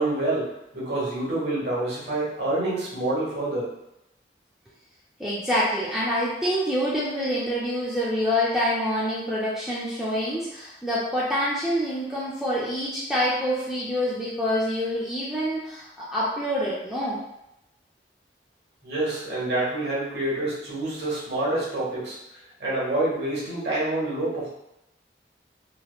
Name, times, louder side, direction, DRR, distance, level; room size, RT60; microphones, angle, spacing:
voice 1, 0.0-3.7 18.8-24.5, right 2 dB, 70° right, -6 dB, 1.3 m, -27 dB
voice 2, 5.2-17.2, equal, 5° right, -8 dB, 0.4 m, -26 dB
3.3 x 2.8 x 2.3 m, 0.87 s
head